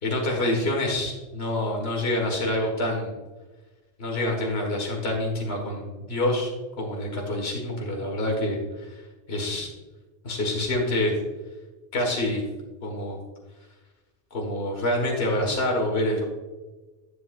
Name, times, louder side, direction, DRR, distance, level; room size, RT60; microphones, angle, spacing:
voice 1, 0.0-3.1 4.0-6.5 6.8-9.0 9.3-9.7 10.2-11.1 11.9-12.4 12.8-13.2 14.3-16.2, left 1 dB, 60° left, 0 dB, 2.0 m, -26 dB
11.0 x 8.4 x 2.5 m, 1.2 s
omnidirectional pair, 1.2 m